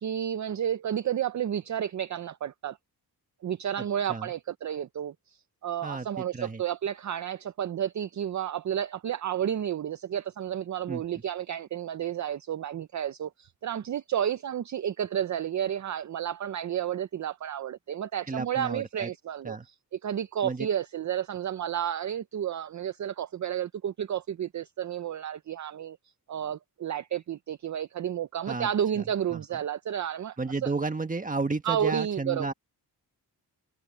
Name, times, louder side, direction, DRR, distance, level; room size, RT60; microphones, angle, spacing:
voice 1, 0.0-2.8 3.4-26.0 26.3-30.4 30.6-30.7 31.6-32.5, right 9 dB, 50° right, 0.5 m, -31 dB
voice 2, 5.8-6.6 10.9-11.0 18.3-19.1 19.4-19.7 20.4-20.7 28.5-28.7 29.3-29.4 30.4-32.5, right 3 dB, 20° right, 1.6 m, -32 dB
wide cardioid pair, 135°, 39 cm